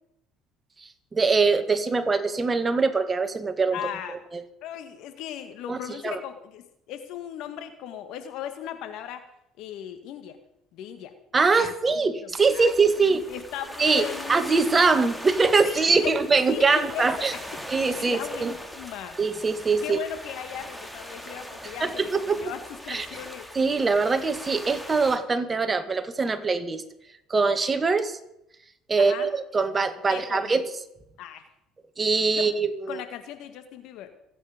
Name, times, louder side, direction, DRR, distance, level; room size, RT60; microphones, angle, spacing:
voice 1, 0.8-3.8 4.3-4.4 5.7-5.8 6.0-6.2 11.3-13.2 13.8-17.3 17.7-18.5 19.2-20.0 21.8-22.5 22.9-23.1 23.5-26.8 27.3-28.2 28.9-30.7 32.0-33.0, right 4 dB, 25° right, 9 dB, 1.9 m, -23 dB
voice 2, 3.7-4.2 4.6-9.2 9.6-10.4 10.7-11.1 11.6-11.7 12.3-12.7 13.3-14.4 14.8-15.0 15.6-17.4 17.9-19.2 19.8-23.5 29.0-29.3 30.1-30.6 31.2-31.5 32.3-32.5 32.9-34.1, left 10 dB, 70° left, 8 dB, 1.9 m, -37 dB
sound 1, 12.4-25.2, equal, 5° left, 2.2 m, -41 dB
26.5 x 9.2 x 5.2 m, 0.81 s
supercardioid pair, 80°, 0 cm